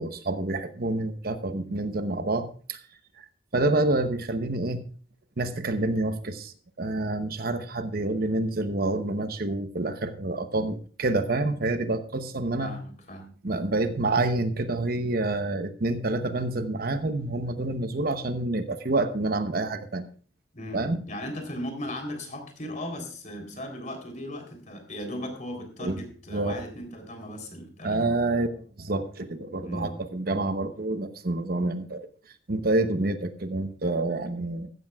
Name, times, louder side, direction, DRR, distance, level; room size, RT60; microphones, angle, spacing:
voice 1, 0.0-2.8 3.2-3.3 3.5-4.8 5.4-12.7 13.4-20.1 20.7-21.0 25.8-26.0 26.3-26.5 27.8-32.1 32.5-34.7, right 2 dB, 55° right, 9 dB, 0.9 m, -28 dB
voice 2, 12.6-13.3 20.5-28.1 29.6-29.9, left 1 dB, 45° left, 5 dB, 3.6 m, -37 dB
15.0 x 13.0 x 2.4 m, 0.41 s
head